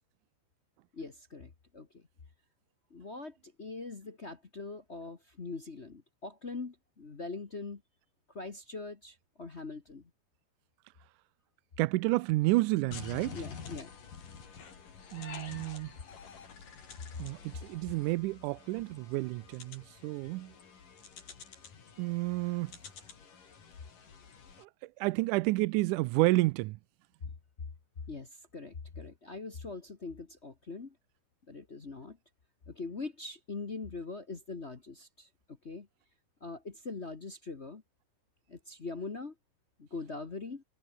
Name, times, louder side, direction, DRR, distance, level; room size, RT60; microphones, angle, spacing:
voice 1, 0.9-2.0 2.9-7.8 8.3-10.0 13.3-13.9 28.1-30.9 31.5-32.2 32.7-35.3 35.6-35.9 36.4-37.8 38.5-39.3 39.8-40.6, left 3 dB, 45° left, 0.8 m, -42 dB
voice 2, 11.8-13.4 15.1-15.9 17.2-20.5 22.0-22.7 24.6-24.7 25.0-26.8, right 21 dB, 80° right, 2.0 m, -30 dB
sound 1, 12.9-24.6, left 6 dB, 80° left, 5.6 m, -49 dB
omnidirectional pair, 3.8 m